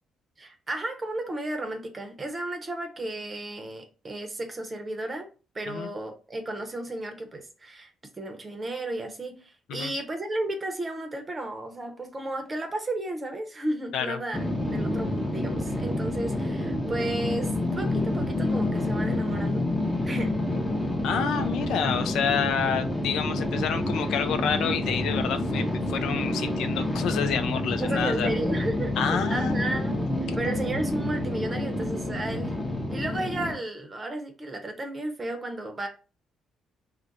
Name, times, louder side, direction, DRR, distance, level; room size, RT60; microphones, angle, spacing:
voice 1, 0.4-5.3 5.5-7.9 8.2-14.4 14.7-19.6 20.0-20.4 23.6-23.7 27.8-30.1 30.3-32.6 32.9-35.9, right 1 dB, 30° right, 0.7 m, -33 dB
sound 1, 14.3-33.5, left 1 dB, 10° left, 0.7 m, -28 dB
voice 2, 21.0-28.3 29.0-29.6 30.3-30.5, left 7 dB, 80° left, 0.4 m, -28 dB
2.4 x 2.1 x 3.9 m
cardioid pair, 90°, 0 cm